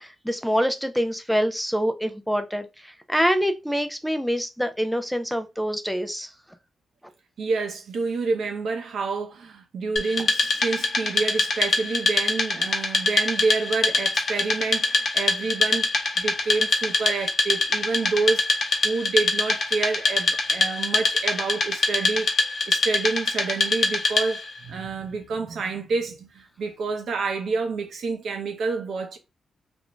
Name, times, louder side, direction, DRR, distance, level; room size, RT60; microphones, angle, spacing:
voice 1, 0.0-6.3, equal, ahead, 0.3 m, -25 dB
voice 2, 7.4-18.6 18.8-22.3 22.7-29.2, right 4 dB, 75° right, 0.6 m, -28 dB
Wood, 10.0-24.5, left 3 dB, 50° left, 0.7 m, -24 dB
2.5 x 2.1 x 2.9 m
cardioid pair, 95°, 0 cm